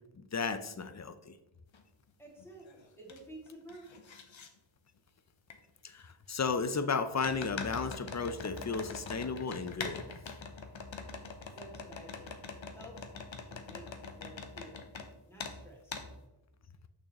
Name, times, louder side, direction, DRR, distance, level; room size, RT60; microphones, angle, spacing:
voice 1, 0.2-1.3 5.8-10.0, left 5 dB, 35° left, 11 dB, 0.5 m, -34 dB
sound 1, 1.7-1.8 2.4-3.2 3.5-4.5 5.5-5.6 7.2-15.1 15.4-15.6 15.9-16.1, left 4 dB, 70° left, 0.9 m, -43 dB
voice 2, 2.2-4.2 11.5-12.3 12.7-13.0 13.3-14.8 15.3-16.0, right 1 dB, 5° left, -3 dB, 2.2 m, -52 dB
6.3 x 6.2 x 3.0 m, 0.93 s
wide cardioid pair, 70°, 49 cm